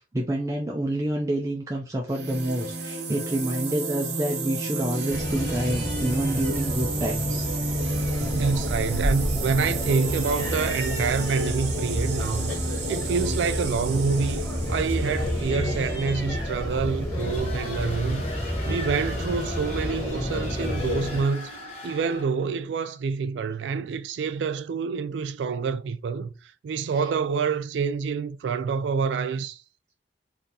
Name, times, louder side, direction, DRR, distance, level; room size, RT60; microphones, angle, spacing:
voice 1, 0.1-7.5 7.8-8.4, right 1 dB, 20° right, 0.4 m, -28 dB
sound 1, 2.1-15.5, right 2 dB, 65° right, 0.8 m, -31 dB
sound 2, 5.1-21.2, left 1 dB, 20° left, 1.8 m, -30 dB
voice 2, 8.3-14.4 14.7-29.6, right 5 dB, 85° right, 0.3 m, -27 dB
sound 3, 17.1-22.5, equal, 35° left, 1.2 m, -40 dB
2.7 x 2.7 x 3.7 m
head